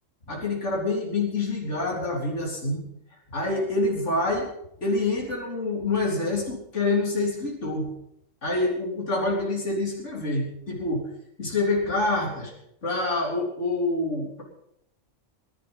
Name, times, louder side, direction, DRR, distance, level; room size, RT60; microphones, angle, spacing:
voice 1, 0.3-2.8 3.3-4.5 4.8-7.9 8.4-11.0 11.4-12.5 12.8-14.4, left 2 dB, 60° left, -3 dB, 4.0 m, -26 dB
19.0 x 11.5 x 5.5 m, 0.76 s
omnidirectional pair, 1.4 m